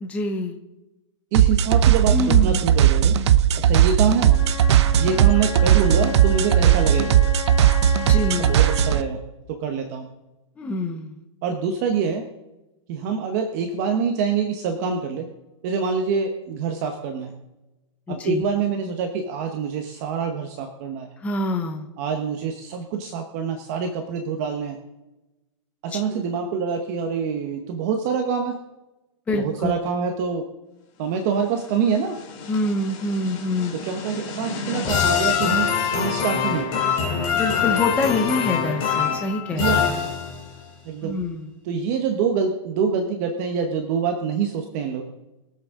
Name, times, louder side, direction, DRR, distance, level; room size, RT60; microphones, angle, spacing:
voice 1, 0.0-0.6 2.1-2.7 8.1-8.5 10.6-11.2 18.1-18.5 21.2-21.9 25.9-26.2 29.3-29.7 32.5-33.7 37.3-39.9 41.0-41.5, left 2 dB, 10° left, 3 dB, 0.8 m, -26 dB
voice 2, 1.3-3.2 3.6-4.3 5.0-7.2 8.4-9.2 9.5-10.1 11.4-12.2 12.9-15.3 15.6-17.3 18.1-21.1 22.0-24.8 25.8-28.5 29.3-30.4 31.0-32.2 33.7-36.8 39.6-40.0 40.8-41.2 41.6-45.0, right 6 dB, 30° right, 4 dB, 1.0 m, -25 dB
sound 1, 1.3-9.0, right 10 dB, 55° right, 0.7 m, -17 dB
Wind instrument woodwind instrument, 4.2-9.2, left 3 dB, 75° left, 3.1 m, -34 dB
sound 2, 31.7-40.6, left 7 dB, 30° left, 2.6 m, -25 dB
22.5 x 8.1 x 3.7 m, 1.0 s
supercardioid pair, 170°, 17 cm